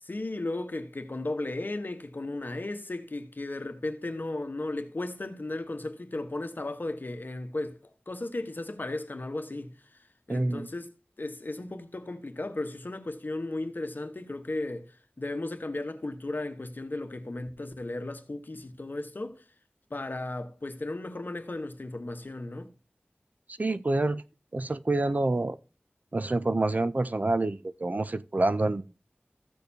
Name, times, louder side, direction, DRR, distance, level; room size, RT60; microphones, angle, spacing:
voice 1, 0.0-7.8 8.1-19.4 19.9-22.7, left 2 dB, 55° left, 1.1 m, -35 dB
voice 2, 10.3-10.7 23.6-24.2 24.5-25.6 26.1-28.9, right 2 dB, 45° right, 0.4 m, -27 dB
15.0 x 6.6 x 2.7 m
wide cardioid pair, 55°, 4 cm